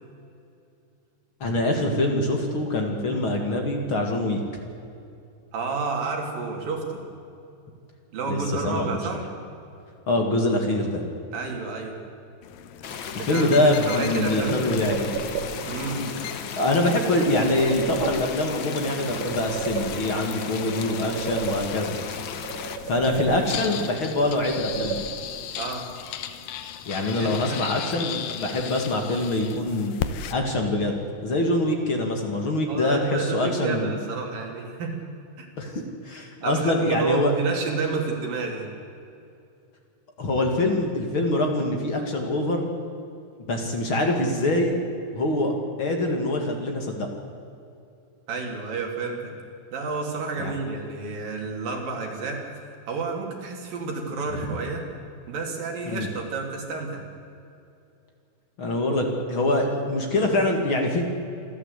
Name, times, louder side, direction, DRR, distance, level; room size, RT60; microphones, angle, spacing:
voice 1, 1.4-4.4 8.3-8.4 8.6-9.0 10.1-11.0 13.3-15.1 16.0-22.0 22.9-25.1 26.9-30.0 30.3-34.0 35.6-37.3 40.2-42.7 43.5-44.8 45.1-45.5 45.8-47.1 50.4-50.5 55.9-56.1 58.6-61.0, left 1 dB, 40° left, 3 dB, 2.4 m, -24 dB
voice 2, 5.5-7.0 8.1-9.3 11.3-12.0 13.2-14.7 15.6-16.0 25.6-25.9 27.2-27.6 32.7-35.0 35.4-35.5 36.4-38.7 48.3-49.3 49.7-52.4 52.9-54.9 55.3-57.0, right 4 dB, 85° right, 1 dB, 4.7 m, -30 dB
sound 1, 12.4-30.3, left 9 dB, 90° left, 2.7 m, -38 dB
sound 2, 12.8-22.8, left 7 dB, 65° left, 1.2 m, -35 dB
sound 3, 13.8-15.8 17.3-18.6 19.0-20.4 20.7-22.1 22.4-23.8 24.1-25.5, right 6 dB, 60° right, 2.4 m, -34 dB
27.5 x 12.5 x 8.2 m, 2.7 s
omnidirectional pair, 3.9 m